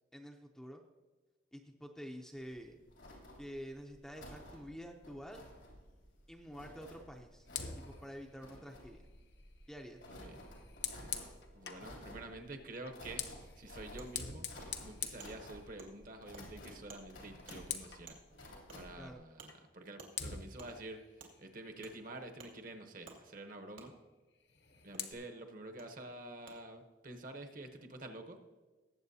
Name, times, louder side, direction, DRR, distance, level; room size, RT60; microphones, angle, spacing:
voice 1, 0.1-0.8 1.5-2.8 3.4-5.4 6.3-7.5 7.8-9.1 9.7-10.0 19.0-19.2, equal, 5° left, 2 dB, 0.5 m, -48 dB
sound 1, 2.4-19.1, left 1 dB, 90° left, 3.2 m, -54 dB
Fire, 7.5-11.9 12.8-16.1 16.4-16.7 17.0-18.1 19.5-19.6 20.1-22.5 24.4-25.1, left 8 dB, 55° left, 0.9 m, -46 dB
voice 2, 11.5-14.5 14.8-18.2 18.7-21.0 21.4-23.9 24.8-28.4, right 2 dB, 45° right, 6 dB, 0.9 m, -48 dB
Wood, 13.3-13.4 14.0-14.1 14.6-14.7 15.2-15.3 15.8-15.9 16.3-16.4 16.9-17.0 17.5-17.6 18.1-18.2 18.7-18.8 19.4-19.5 20.0-20.1 20.6-20.7 21.2-21.3 21.8-22.0 22.4-22.5 23.0-23.2 23.8-23.9 24.9-25.0 25.8-25.9 26.5-26.6, right 4 dB, 80° right, 1.9 m, -52 dB
19.0 x 7.9 x 2.7 m, 1.3 s
head